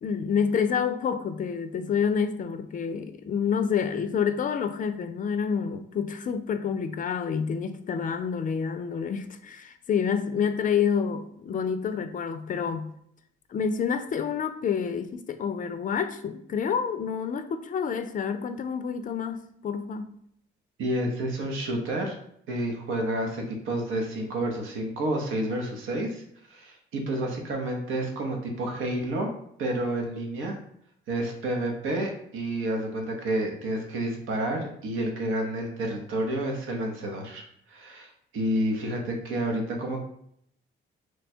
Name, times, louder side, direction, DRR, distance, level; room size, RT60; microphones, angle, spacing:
voice 1, 0.0-12.9 13.5-20.1, left 6 dB, 45° left, 9 dB, 0.4 m, -28 dB
voice 2, 20.8-22.1 22.5-26.2 26.5-29.3 29.6-30.6 31.1-37.4 37.7-40.0, right 1 dB, 85° right, 2 dB, 0.9 m, -29 dB
3.1 x 2.2 x 4.3 m, 0.71 s
cardioid pair, 90°, 20 cm